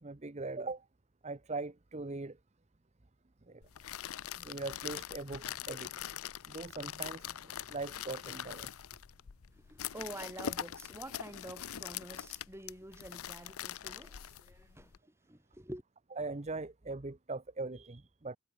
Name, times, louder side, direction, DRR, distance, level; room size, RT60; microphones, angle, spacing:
voice 1, 0.0-0.9 1.2-2.4 3.5-3.6 4.4-5.9 6.5-8.7 14.1-14.2 16.2-18.4, right 3 dB, 30° right, 0.9 m, -41 dB
sound 1, 3.6-15.0, left 10 dB, 75° left, 0.6 m, -43 dB
voice 2, 9.5-14.9 15.3-15.8, right 1 dB, 10° right, 3.0 m, -48 dB
head